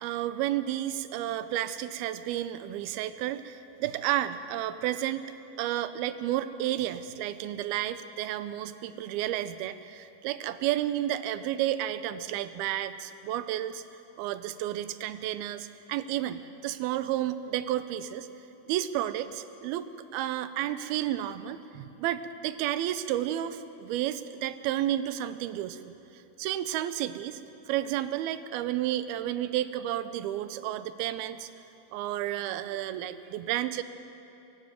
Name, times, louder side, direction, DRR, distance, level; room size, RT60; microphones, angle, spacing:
voice 1, 0.0-5.3 5.6-13.8 14.2-18.3 18.7-19.9 20.1-25.9 26.4-27.4 27.7-31.5 31.9-33.8, right 12 dB, 85° right, 12 dB, 2.6 m, -31 dB
23.5 x 12.5 x 9.3 m, 2.9 s
omnidirectional pair, 4.3 m